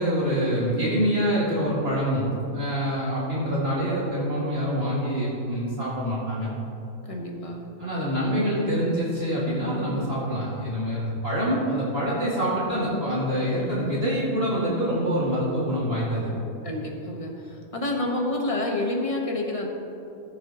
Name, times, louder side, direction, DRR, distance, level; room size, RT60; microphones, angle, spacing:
voice 1, 0.0-6.5 7.8-16.3, equal, 40° right, -9 dB, 2.5 m, -25 dB
voice 2, 7.0-7.6 16.6-19.7, left 2 dB, 25° left, 0 dB, 1.3 m, -29 dB
18.0 x 7.7 x 3.0 m, 2.9 s
omnidirectional pair, 1.6 m